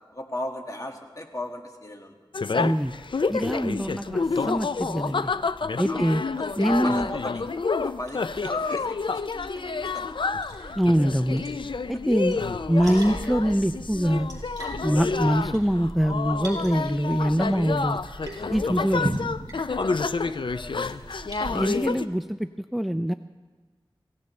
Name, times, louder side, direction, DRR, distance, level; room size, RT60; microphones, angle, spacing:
voice 1, 0.1-2.1 5.9-6.4 6.8-7.4 7.8-10.1 11.9-12.0 14.8-15.1 19.8-21.6, left 1 dB, 40° left, 2 dB, 2.0 m, -38 dB
sound 1, 2.3-22.1, left 4 dB, 60° left, 0.5 m, -29 dB
voice 2, 2.6-2.9 3.3-5.3 5.8-6.2 6.6-7.1 10.8-11.4 11.9-12.4 12.7-14.3 14.8-18.0 18.5-19.1 21.5-22.4 22.7-23.1, equal, ahead, 9 dB, 0.5 m, -24 dB
Liquid, 2.8-21.8, right 1 dB, 40° right, 5.7 m, -41 dB
23.5 x 17.0 x 3.3 m, 1.4 s
wide cardioid pair, 50°, 9 cm